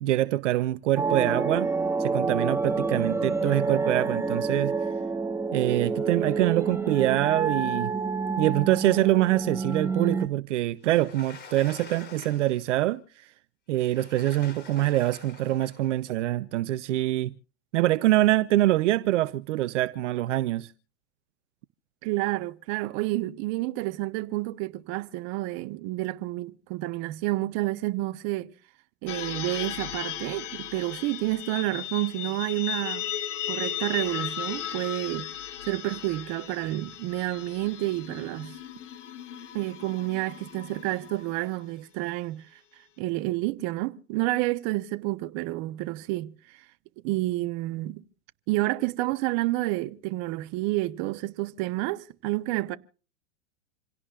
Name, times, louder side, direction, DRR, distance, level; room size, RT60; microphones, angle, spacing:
voice 1, 0.0-1.7 2.0-4.7 5.5-7.9 8.4-13.0 13.7-17.3 17.7-20.7, right 15 dB, 65° right, 0.9 m, -25 dB
sound 1, 1.0-10.3, right 4 dB, 5° right, 1.3 m, -28 dB
Sliding door, 10.9-12.8 13.7-15.9, left 5 dB, 25° left, 4.0 m, -47 dB
voice 2, 22.0-28.5 29.0-33.1 33.5-35.3 35.6-38.6 39.5-42.6 43.0-46.6 47.0-48.0 48.5-52.8, right 18 dB, 45° right, 1.2 m, -29 dB
sound 2, 29.1-41.6, left 11 dB, 70° left, 2.3 m, -36 dB
27.5 x 17.0 x 2.5 m
hypercardioid pair, 120°, 38 cm